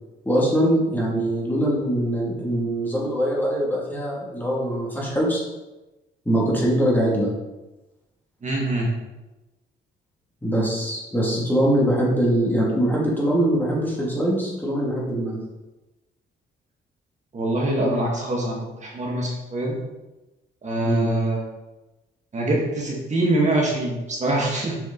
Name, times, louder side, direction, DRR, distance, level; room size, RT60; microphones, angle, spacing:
voice 1, 0.2-5.4 6.3-7.3 10.4-15.4 20.8-21.1, right 1 dB, 10° left, -4 dB, 2.5 m, -22 dB
voice 2, 8.4-8.9 17.3-19.8 20.6-21.4 22.3-24.7, right 1 dB, 35° right, -2 dB, 1.9 m, -24 dB
7.7 x 5.0 x 4.0 m, 1.1 s
cardioid pair, 90°, 20 cm